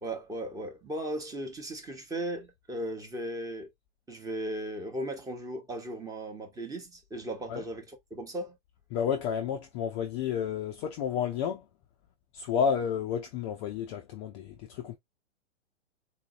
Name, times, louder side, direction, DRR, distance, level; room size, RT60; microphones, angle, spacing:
voice 1, 0.0-3.7 4.1-8.6, right 1 dB, 10° right, 0.9 m, -37 dB
voice 2, 8.9-11.6 12.3-15.0, left 7 dB, 25° left, 0.4 m, -31 dB
4.0 x 2.6 x 2.4 m
hypercardioid pair, 120°, 36 cm